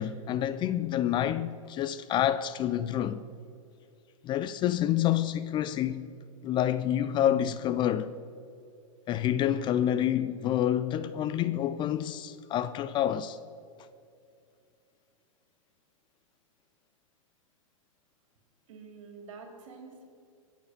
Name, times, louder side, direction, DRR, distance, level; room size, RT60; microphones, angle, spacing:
voice 1, 0.0-3.2 4.2-6.1 6.4-8.1 9.1-13.4, left 11 dB, 25° left, 0.4 m, -28 dB
voice 2, 18.7-20.0, right 4 dB, 65° right, 3.0 m, -47 dB
21.5 x 7.4 x 5.8 m
hypercardioid pair, 115°, 18 cm